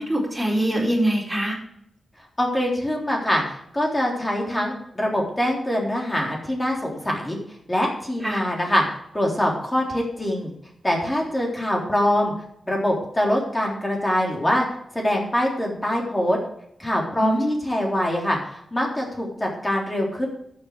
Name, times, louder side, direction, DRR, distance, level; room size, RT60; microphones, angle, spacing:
voice 1, 0.0-1.6 8.2-8.4 17.2-17.6, right 1 dB, 10° right, -2 dB, 4.6 m, -23 dB
voice 2, 2.4-3.4 3.7-7.4 7.7-10.5 10.8-12.3 12.7-14.7 14.9-16.4 16.8-20.3, left 1 dB, 15° left, -1 dB, 3.6 m, -24 dB
13.0 x 8.2 x 4.7 m, 0.72 s
wide cardioid pair, 105°, 0 cm